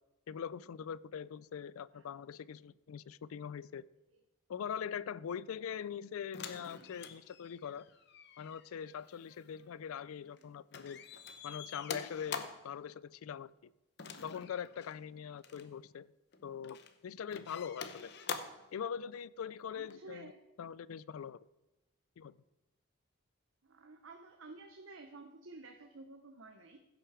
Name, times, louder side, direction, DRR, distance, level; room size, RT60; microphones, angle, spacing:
voice 1, 0.3-3.8 4.5-7.9 8.4-11.0 11.4-13.5 14.2-16.1 16.4-16.8 17.0-18.1 18.7-20.3 20.6-21.4 22.2-22.4, left 7 dB, 85° left, 0.4 m, -42 dB
sound 1, 6.3-10.4 10.7-12.7 14.0-15.0 15.4-15.7 16.3-16.9 17.3-18.7 19.9-20.0, left 5 dB, 50° left, 0.7 m, -46 dB
voice 2, 15.5-15.8 19.7-20.4 23.6-26.9, right 3 dB, 70° right, 0.8 m, -53 dB
16.0 x 6.0 x 4.9 m
head